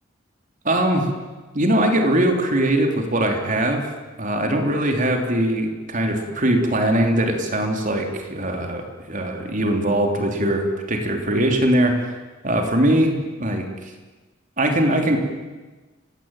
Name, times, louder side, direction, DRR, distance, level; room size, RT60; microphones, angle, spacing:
voice 1, 0.7-1.1 1.6-3.8 4.2-12.0 12.4-13.1 13.4-13.9 14.6-15.2, right 1 dB, 40° right, 3 dB, 3.5 m, -21 dB
30.0 x 17.5 x 9.1 m, 1.3 s
head